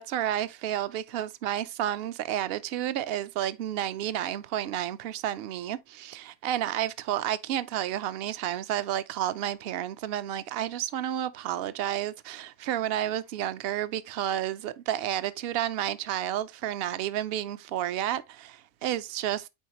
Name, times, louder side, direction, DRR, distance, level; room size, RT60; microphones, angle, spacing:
voice 1, 0.0-19.5, right 11 dB, 60° right, 0.8 m, -31 dB
9.2 x 3.9 x 2.9 m
omnidirectional pair, 1.3 m